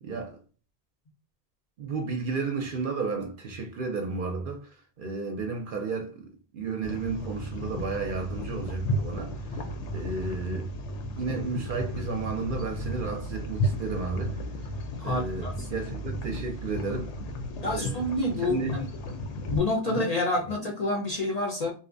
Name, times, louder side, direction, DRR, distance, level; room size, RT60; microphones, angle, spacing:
voice 1, 0.0-0.4 1.8-10.7 11.1-14.4 15.0-17.1 17.7-18.0 18.4-18.8 19.1-19.2 19.9-20.1, right 4 dB, 60° right, 0.6 m, -33 dB
sound 1, 6.8-19.6, equal, 85° left, 0.9 m, -34 dB
voice 2, 15.0-15.7 17.6-18.8 19.5-21.7, left 2 dB, 50° left, 0.5 m, -28 dB
2.7 x 2.0 x 2.5 m
omnidirectional pair, 1.1 m